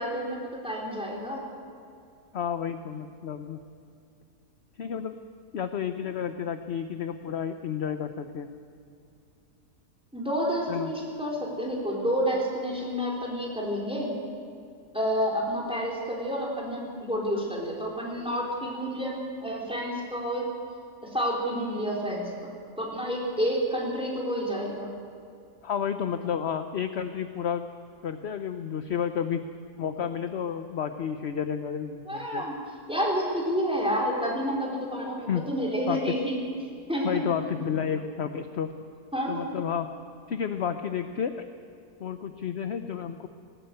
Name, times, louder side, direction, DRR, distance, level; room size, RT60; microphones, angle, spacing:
voice 1, 0.0-1.4 10.1-14.2 14.9-19.2 19.4-20.5 21.0-24.9 32.1-32.6 32.9-36.4 36.9-37.3 39.1-39.6, equal, 5° right, -3 dB, 4.5 m, -29 dB
voice 2, 2.3-3.6 4.8-5.2 5.5-8.5 10.7-10.9 25.6-27.7 28.0-29.4 29.8-32.4 35.3-35.4 35.9-36.1 37.0-38.7 39.3-39.9 40.3-41.5 42.0-43.3, left 8 dB, 50° left, 8 dB, 0.9 m, -31 dB
19.5 x 18.5 x 8.1 m, 2.5 s
omnidirectional pair, 1.7 m